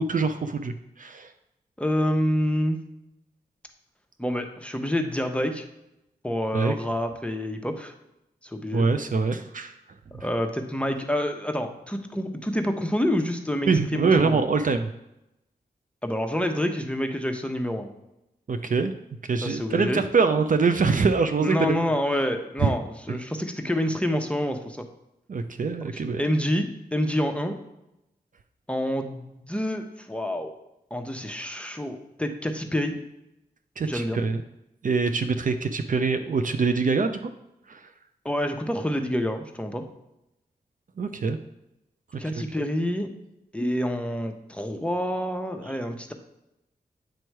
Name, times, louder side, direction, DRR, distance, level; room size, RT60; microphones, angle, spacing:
voice 1, 0.0-1.3 6.5-6.7 8.7-9.7 10.1-10.3 13.7-14.9 18.5-18.9 19.3-21.7 22.6-22.7 23.1-23.2 25.3-26.2 33.8-34.4 34.8-37.3 37.7-37.9 41.0-41.4 42.4-42.5, right 4 dB, 55° right, 8 dB, 0.5 m, -24 dB
voice 2, 1.8-2.8 4.2-5.6 6.2-7.9 8.4-8.8 10.2-14.4 16.0-17.9 19.4-20.0 21.4-24.8 25.9-27.6 28.7-30.5 30.9-33.0 33.9-34.2 38.2-39.8 42.2-43.1 43.5-46.1, equal, 5° left, 5 dB, 0.9 m, -27 dB
9.0 x 3.1 x 4.6 m, 0.87 s
cardioid pair, 50°, 17 cm